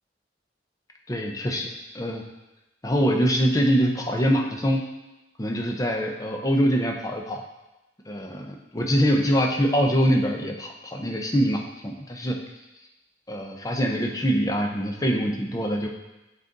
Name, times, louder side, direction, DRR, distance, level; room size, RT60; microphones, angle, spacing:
voice 1, 1.1-1.7 1.9-2.2 2.8-4.8 5.4-7.4 8.1-12.4 13.3-15.9, equal, 20° left, 1 dB, 0.7 m, -24 dB
7.7 x 4.1 x 3.9 m, 1.0 s
head